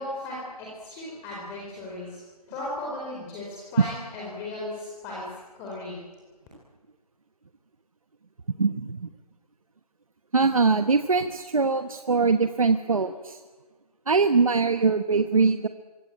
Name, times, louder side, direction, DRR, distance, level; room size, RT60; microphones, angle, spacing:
voice 1, 0.0-2.2 2.5-5.3 5.5-6.0, left 1 dB, 10° left, -4 dB, 4.7 m, -36 dB
voice 2, 8.6-9.1 10.3-13.4 14.1-15.7, right 4 dB, 60° right, 9 dB, 1.3 m, -22 dB
26.5 x 24.0 x 8.8 m, 1.3 s
figure-of-eight pair, 165°, 20 cm